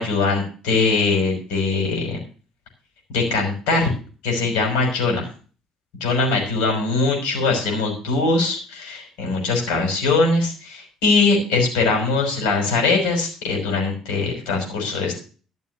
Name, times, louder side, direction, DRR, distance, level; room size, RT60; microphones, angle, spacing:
voice 1, 0.0-2.2 3.1-3.9 4.2-5.3 6.0-15.2, left 3 dB, 65° left, 2 dB, 5.8 m, -21 dB
13.0 x 6.9 x 6.8 m, 0.39 s
figure-of-eight pair, 50°, 2 cm